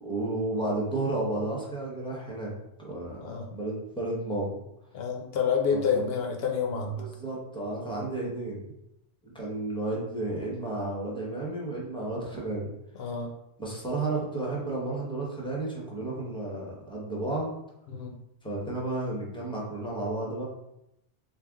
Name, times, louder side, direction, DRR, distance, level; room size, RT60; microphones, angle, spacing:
voice 1, 0.0-4.5 5.7-6.0 7.0-8.7 9.2-12.7 13.6-17.5 18.4-20.4, right 2 dB, 5° left, -4 dB, 0.7 m, -32 dB
voice 2, 3.2-3.5 4.9-7.0 13.0-13.3 17.9-18.1, left 6 dB, 60° left, 2 dB, 0.7 m, -28 dB
3.6 x 2.5 x 3.5 m, 0.84 s
omnidirectional pair, 1.3 m